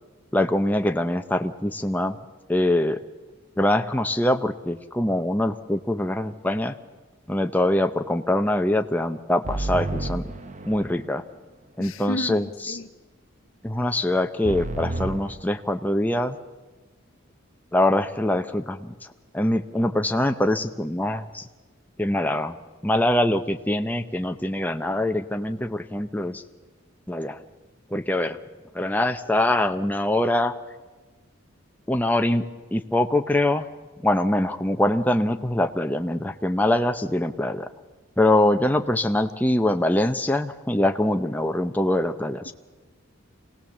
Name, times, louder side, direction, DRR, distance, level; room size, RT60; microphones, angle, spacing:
voice 1, 0.3-2.2 2.5-3.0 3.6-6.8 7.3-10.2 10.7-11.2 11.8-12.8 13.6-16.4 17.7-18.9 19.3-21.5 22.0-22.5 22.8-26.4 27.1-27.4 27.9-28.4 28.7-30.5 31.9-32.5 32.7-33.7 34.0-37.7 38.2-42.5, left 1 dB, 10° left, 0.6 m, -23 dB
sound 1, 9.4-11.1 14.4-15.3, right 2 dB, 35° right, 0.9 m, -30 dB
voice 2, 11.8-12.9 42.4-42.5, left 1 dB, 75° left, 0.9 m, -33 dB
25.0 x 17.5 x 7.2 m
head